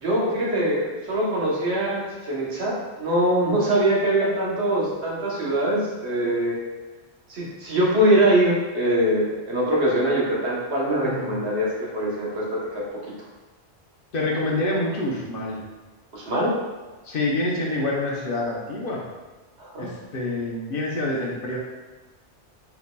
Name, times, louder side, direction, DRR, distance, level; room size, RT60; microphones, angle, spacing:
voice 1, 0.0-6.6 7.3-12.8 16.1-16.5 19.6-19.9, right 1 dB, 85° right, -4 dB, 1.3 m, -23 dB
voice 2, 11.0-11.4 14.1-15.6 17.0-19.0 19.8-21.6, left 2 dB, 60° left, -3 dB, 0.9 m, -27 dB
4.5 x 3.9 x 2.2 m, 1.2 s
omnidirectional pair, 1.1 m